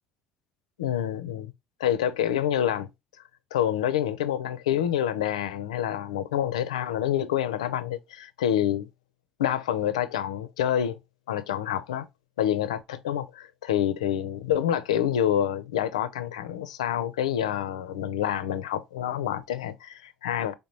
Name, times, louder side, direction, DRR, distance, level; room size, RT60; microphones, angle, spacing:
voice 1, 0.8-1.5 1.8-2.9 3.5-8.9 9.4-11.0 11.3-12.1 12.4-20.5, left 10 dB, 75° left, 0.4 m, -27 dB
3.9 x 3.4 x 2.7 m
figure-of-eight pair, 55°, 3 cm